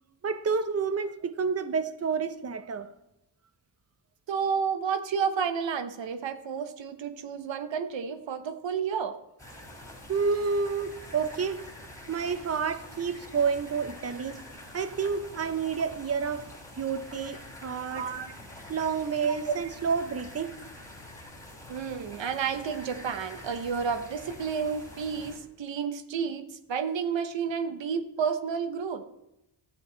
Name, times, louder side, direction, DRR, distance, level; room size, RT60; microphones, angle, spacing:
voice 1, 0.2-2.9 10.1-11.6 12.1-14.4 14.7-16.4 16.7-18.1 18.7-20.5, right 5 dB, 35° right, 0.7 m, -29 dB
voice 2, 4.3-9.2 17.1-17.3 17.9-18.3 19.3-19.5 21.7-29.0, right 6 dB, 85° right, 1.0 m, -31 dB
sound 1, 9.4-25.4, left 1 dB, 5° left, 3.0 m, -46 dB
13.0 x 8.4 x 3.9 m
wide cardioid pair, 95°, 43 cm